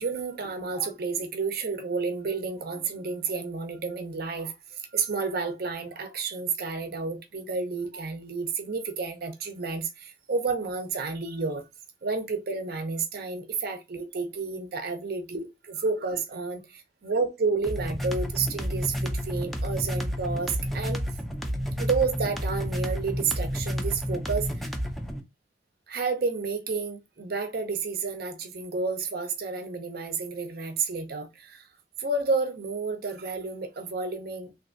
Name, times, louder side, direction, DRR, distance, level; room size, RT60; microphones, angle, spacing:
voice 1, 0.0-11.6 12.0-21.0 21.8-24.5 25.9-31.7 32.0-34.7, right 4 dB, 55° right, 0.6 m, -30 dB
sound 1, 17.6-25.2, equal, ahead, 0.4 m, -30 dB
3.4 x 2.6 x 2.5 m
head